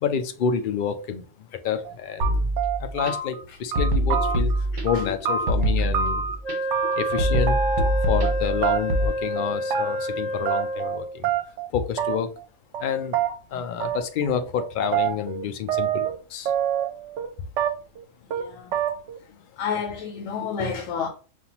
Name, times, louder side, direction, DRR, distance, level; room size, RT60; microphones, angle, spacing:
voice 1, 0.0-2.5 2.8-6.3 7.0-7.6 8.1-11.3 11.7-12.3 12.8-13.2 13.5-16.5, left 7 dB, 65° left, 0.5 m, -28 dB
sound 1, 1.8-1.9 2.2-3.4 3.7-4.6 4.9-6.4 6.7-7.2 7.5-8.3 8.6-9.1 9.4-10.1 10.5-11.0 11.2-11.7 12.0-12.4 12.7-12.8 13.1-13.3 13.8-14.3 14.6-16.2 16.5-17.3 17.6-18.0 18.3-18.5 18.7-19.2, right 8 dB, 70° right, 0.9 m, -26 dB
sound 2, 2.2-3.1 3.8-5.1 5.5-6.5 7.2-9.1, right 1 dB, 40° right, 1.0 m, -24 dB
voice 2, 4.1-4.5 4.9-5.2 5.8-5.9 13.5-13.6 18.3-18.8 19.6-21.1, left 6 dB, 80° left, 1.0 m, -31 dB
Wind instrument woodwind instrument, 6.4-11.2, equal, 25° left, 1.0 m, -29 dB
5.4 x 2.5 x 2.8 m
omnidirectional pair, 1.3 m